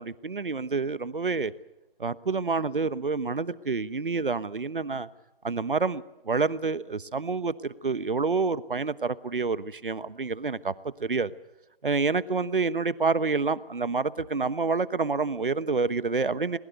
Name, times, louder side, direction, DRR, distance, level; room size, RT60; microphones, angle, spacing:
voice 1, 0.0-1.5 2.0-5.1 5.4-10.7 11.0-11.3 11.8-16.6, right 4 dB, 65° right, 16 dB, 1.2 m, -28 dB
22.0 x 21.0 x 8.0 m, 0.91 s
figure-of-eight pair, 175°, 29 cm